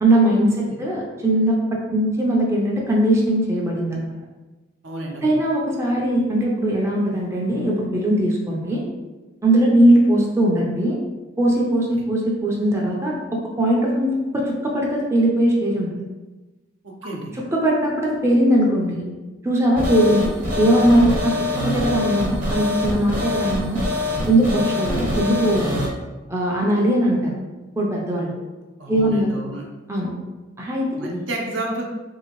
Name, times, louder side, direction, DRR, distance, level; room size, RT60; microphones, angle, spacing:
voice 1, 0.0-4.2 5.2-8.8 9.4-11.0 11.4-15.9 17.3-19.1 19.4-23.8 24.3-25.8 26.3-27.3 27.8-28.3 28.9-29.3 29.9-30.1 30.6-31.0, right 1 dB, 15° right, -3 dB, 0.5 m, -20 dB
voice 2, 4.8-5.4 16.8-17.3 28.8-29.7 31.0-31.8, right 2 dB, 70° right, -1 dB, 0.7 m, -30 dB
sound 1, 19.8-25.9, left 2 dB, 40° right, 0.9 m, -24 dB
3.3 x 2.7 x 2.9 m, 1.2 s
head